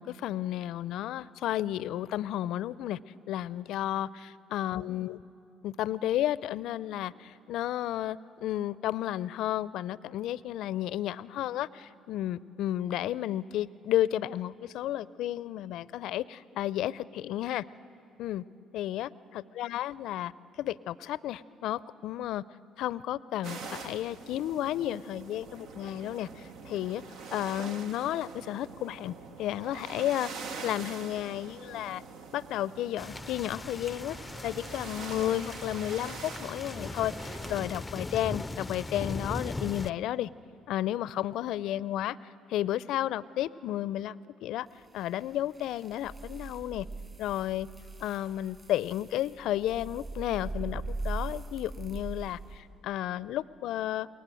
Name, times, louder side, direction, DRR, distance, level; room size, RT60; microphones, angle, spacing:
voice 1, 0.0-3.0 3.3-5.2 5.6-17.6 18.2-18.4 18.7-20.3 20.6-22.4 22.8-27.0 27.3-32.0 32.3-34.2 34.4-40.3 40.7-44.7 44.9-46.9 47.2-47.7 48.0-54.1, left 13 dB, 70° left, 19 dB, 0.5 m, -32 dB
sound 1, 23.4-37.7, right 5 dB, 65° right, 1.1 m, -44 dB
sound 2, 33.0-39.9, left 2 dB, 15° left, 0.5 m, -39 dB
sound 3, 44.7-52.6, right 3 dB, 30° right, 6.1 m, -40 dB
28.5 x 22.5 x 7.7 m, 2.8 s
hypercardioid pair, 55°, 0 cm